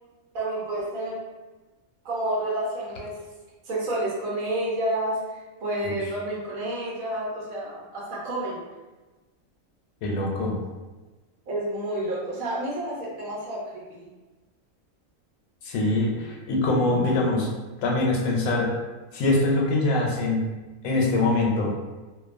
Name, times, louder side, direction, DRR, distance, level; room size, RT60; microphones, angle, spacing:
voice 1, 0.3-1.2 2.0-3.1 3.6-8.6 11.5-14.1, right 1 dB, 80° right, -5 dB, 1.2 m, -30 dB
voice 2, 10.0-10.6 15.6-17.5 17.8-18.7 19.1-20.4 20.8-21.7, left 2 dB, 85° left, -1 dB, 1.0 m, -23 dB
2.6 x 2.2 x 2.4 m, 1.2 s
omnidirectional pair, 1.4 m